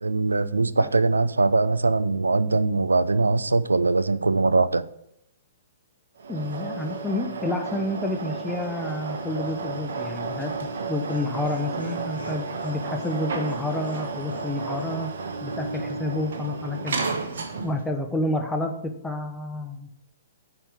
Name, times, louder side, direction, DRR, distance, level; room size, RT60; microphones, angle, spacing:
voice 1, 0.0-4.8, right 3 dB, 80° right, 0.4 m, -22 dB
sound 1, 6.2-17.9, right 4 dB, 60° right, 1.2 m, -32 dB
voice 2, 6.3-15.1 15.4-17.0 17.6-19.9, left 2 dB, 5° left, 0.8 m, -29 dB
Laughter, 10.5-14.5 14.8-14.9 15.2-15.3, left 3 dB, 75° left, 2.4 m, -43 dB
8.7 x 4.7 x 7.0 m
figure-of-eight pair, 115°, 0 cm